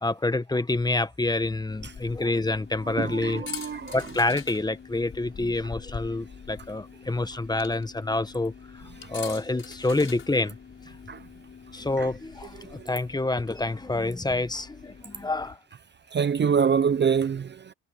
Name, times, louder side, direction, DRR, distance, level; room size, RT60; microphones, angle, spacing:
voice 1, 0.0-8.8 9.1-10.6 11.7-15.6, left 2 dB, 15° left, 1.2 m, -27 dB
sound 1, 1.7-15.6, left 6 dB, 40° left, 5.0 m, -44 dB
voice 2, 3.0-4.0 11.1-11.2 12.0-12.1 12.7-12.8 16.1-17.7, right 7 dB, 35° right, 0.7 m, -25 dB
cardioid pair, 90°, 30 cm